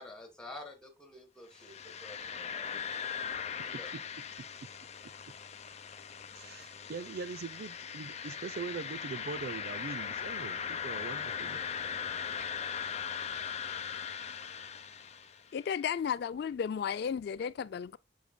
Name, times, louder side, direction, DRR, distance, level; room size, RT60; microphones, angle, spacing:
voice 1, 0.0-3.0 3.8-3.9, left 2 dB, 5° left, 2.1 m, -49 dB
sound 1, 1.5-15.5, left 7 dB, 40° left, 0.7 m, -39 dB
voice 2, 6.3-11.6, right 4 dB, 60° right, 0.4 m, -42 dB
voice 3, 15.5-18.0, left 7 dB, 65° left, 0.3 m, -34 dB
8.3 x 6.3 x 2.2 m
head